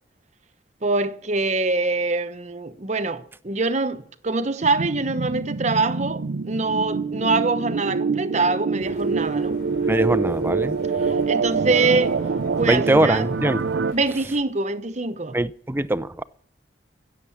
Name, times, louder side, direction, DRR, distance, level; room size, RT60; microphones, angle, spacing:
voice 1, 0.8-9.6 11.3-12.2 12.6-13.3 13.9-15.4, right 3 dB, 40° right, 1.0 m, -24 dB
sound 1, 4.6-13.9, right 4 dB, 80° right, 0.5 m, -25 dB
sound 2, 8.8-14.4, left 2 dB, 60° left, 3.8 m, -44 dB
voice 2, 9.9-10.8 12.7-13.6 15.3-16.2, right 1 dB, 10° right, 0.5 m, -22 dB
16.0 x 7.6 x 8.3 m
head